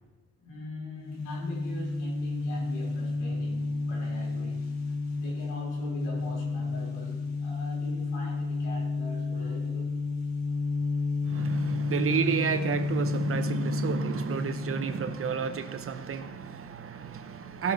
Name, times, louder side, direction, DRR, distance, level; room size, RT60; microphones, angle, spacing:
voice 1, 0.4-4.7 5.1-10.0, left 1 dB, 90° left, 4.2 m, -42 dB
sound 1, 1.0-15.5, left 3 dB, 60° left, 1.9 m, -31 dB
voice 2, 11.2-17.7, right 7 dB, 45° right, 0.9 m, -31 dB
16.0 x 7.4 x 4.1 m
cardioid pair, 90°, 30 cm